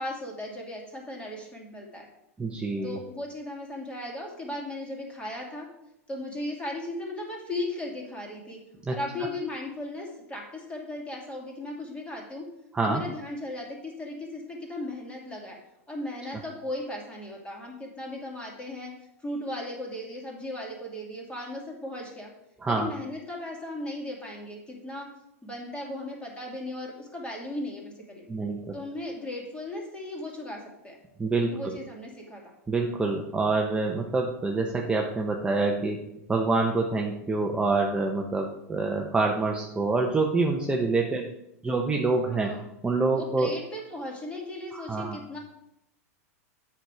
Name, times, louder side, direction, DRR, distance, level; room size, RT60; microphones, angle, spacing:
voice 1, 0.0-2.1 2.8-5.7 6.1-8.6 8.9-12.5 12.8-15.6 15.9-18.9 19.2-22.3 22.7-25.1 25.4-28.3 28.7-31.0 31.5-32.5 42.3-42.6 43.1-45.4, left 1 dB, 15° left, -1 dB, 2.6 m, -37 dB
voice 2, 2.4-3.0 8.9-9.0 12.7-13.0 22.6-22.9 28.3-28.8 31.2-31.8 32.7-36.0 36.3-41.3 41.6-42.5 42.8-43.5 44.7-45.2, right 3 dB, 10° right, 1 dB, 0.9 m, -26 dB
8.0 x 5.9 x 4.9 m, 0.83 s
hypercardioid pair, 110°, 8 cm